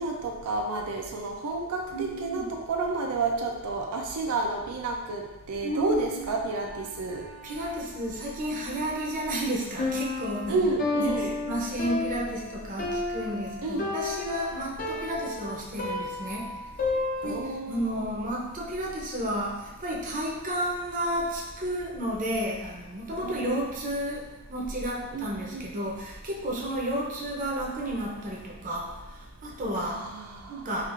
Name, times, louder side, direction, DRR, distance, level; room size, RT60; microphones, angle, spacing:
voice 1, 0.0-5.2 5.5-7.2 10.5-11.3 13.6-13.8 17.2-18.1 23.2-23.4 25.1-25.7 29.7-30.7, right 3 dB, 85° right, 1 dB, 0.4 m, -30 dB
voice 2, 1.9-2.5 5.6-6.3 7.4-10.7 11.0-16.6 17.2-30.0 30.5-30.9, equal, 35° right, -3 dB, 0.6 m, -32 dB
sound 1, 6.4-11.6, right 2 dB, 60° left, 1.0 m, -50 dB
Piano, 9.8-17.6, left 3 dB, 40° left, 0.5 m, -32 dB
4.4 x 2.4 x 2.4 m, 1.1 s
head